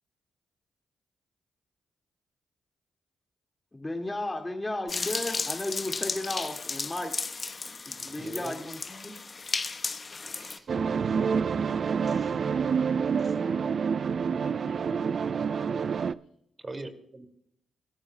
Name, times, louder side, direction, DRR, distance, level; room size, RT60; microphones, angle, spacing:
voice 1, 3.7-7.1 7.9-9.1, left 2 dB, 20° left, 3 dB, 2.0 m, -34 dB
sound 1, 4.9-10.6, left 4 dB, 40° left, 1.0 m, -34 dB
voice 2, 7.9-8.5 10.3-10.7 11.1-11.2 11.7-12.3 13.2-13.4 16.6-17.3, right 2 dB, 35° right, 7 dB, 2.3 m, -44 dB
sound 2, 10.7-16.1, right 6 dB, 55° right, 0.4 m, -27 dB
voice 3, 12.1-12.8 14.1-15.1, left 3 dB, 75° left, 2 dB, 2.9 m, -51 dB
26.5 x 13.5 x 2.2 m, 0.72 s
hypercardioid pair, 45°, 0 cm